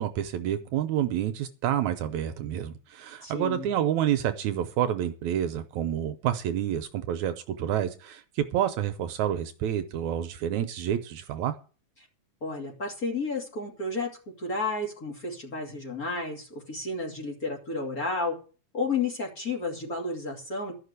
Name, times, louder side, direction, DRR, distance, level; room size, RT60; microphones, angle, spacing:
voice 1, 0.0-11.6, right 10 dB, 75° right, 2.0 m, -28 dB
voice 2, 3.2-3.6 12.4-14.1 14.4-18.3 18.7-20.7, left 3 dB, 30° left, 3.0 m, -31 dB
13.0 x 5.9 x 8.1 m
omnidirectional pair, 3.6 m